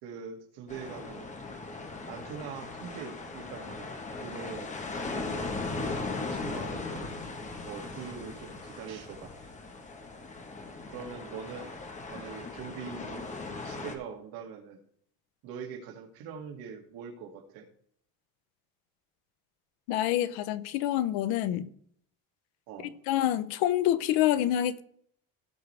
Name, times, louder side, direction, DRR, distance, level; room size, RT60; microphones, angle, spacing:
voice 1, 0.0-1.4 2.1-3.9 4.2-4.7 5.1-7.1 7.7-9.5 10.9-11.8 12.1-13.3 13.6-14.8 15.4-17.7 22.7-23.0, right 7 dB, 75° right, 2.6 m, -43 dB
sound 1, 0.7-14.0, left 3 dB, 20° left, 1.3 m, -38 dB
voice 2, 19.9-21.7 23.1-24.8, left 12 dB, 80° left, 0.9 m, -27 dB
17.0 x 6.2 x 3.4 m
cardioid pair, 165°, 37 cm